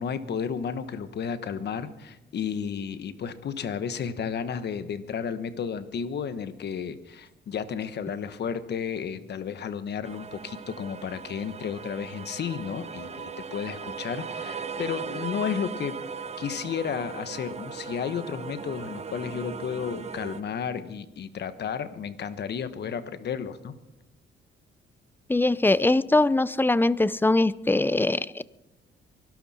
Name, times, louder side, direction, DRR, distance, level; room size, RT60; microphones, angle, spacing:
voice 1, 0.0-16.0 16.4-23.7, left 7 dB, 60° left, 11 dB, 1.2 m, -32 dB
sound 1, 10.0-20.4, right 6 dB, 35° right, 0.8 m, -38 dB
voice 2, 25.3-28.4, left 2 dB, 10° left, 18 dB, 0.5 m, -22 dB
24.0 x 12.0 x 4.3 m, 0.96 s
cardioid pair, 90°, 20 cm